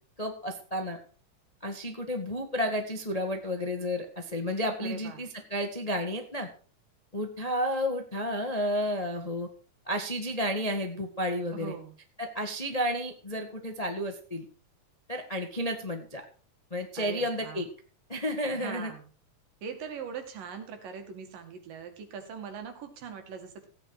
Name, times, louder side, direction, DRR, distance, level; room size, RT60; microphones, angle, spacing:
voice 1, 0.2-1.0 1.6-6.5 7.1-9.5 9.9-11.7 12.2-14.4 15.1-16.2 16.7-17.7 18.1-18.9, equal, 35° left, 4 dB, 0.6 m, -31 dB
voice 2, 4.8-5.3 11.5-11.9 17.0-17.6 18.5-19.1 19.6-23.7, right 7 dB, 85° right, 6 dB, 3.8 m, -41 dB
15.5 x 9.0 x 4.8 m, 0.40 s
omnidirectional pair, 3.8 m